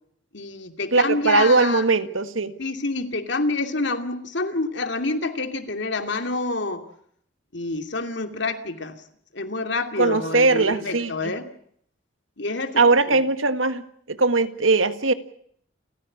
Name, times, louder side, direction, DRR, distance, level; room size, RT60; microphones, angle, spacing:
voice 1, 0.3-1.8 2.6-6.8 7.5-9.0 9.3-11.4 12.4-13.2, left 3 dB, 60° left, 7 dB, 2.7 m, -28 dB
voice 2, 0.9-2.5 10.0-11.1 12.8-13.8 14.1-15.1, right 3 dB, 85° right, 11 dB, 1.8 m, -20 dB
30.0 x 15.0 x 8.7 m, 0.67 s
head